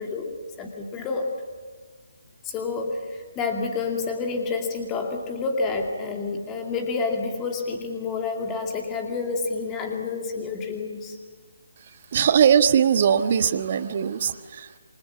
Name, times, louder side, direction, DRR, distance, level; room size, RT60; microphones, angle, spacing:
voice 1, 0.0-1.3 2.4-11.2, left 4 dB, 15° left, 2 dB, 2.6 m, -29 dB
voice 2, 12.1-14.8, right 8 dB, 40° right, 10 dB, 1.4 m, -20 dB
28.5 x 24.5 x 7.3 m, 1.5 s
figure-of-eight pair, 145°, 0 cm